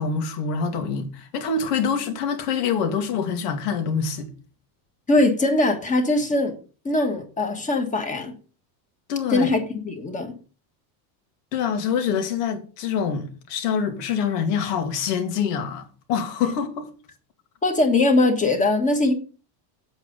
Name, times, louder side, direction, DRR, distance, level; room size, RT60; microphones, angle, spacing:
voice 1, 0.0-4.3 9.1-9.5 11.5-16.9, left 6 dB, 70° left, 2.6 m, -25 dB
voice 2, 5.1-6.6 6.9-8.3 9.3-10.3 17.6-19.1, left 2 dB, 15° left, 1.6 m, -21 dB
8.2 x 8.1 x 5.3 m
cardioid pair, 160°, 49 cm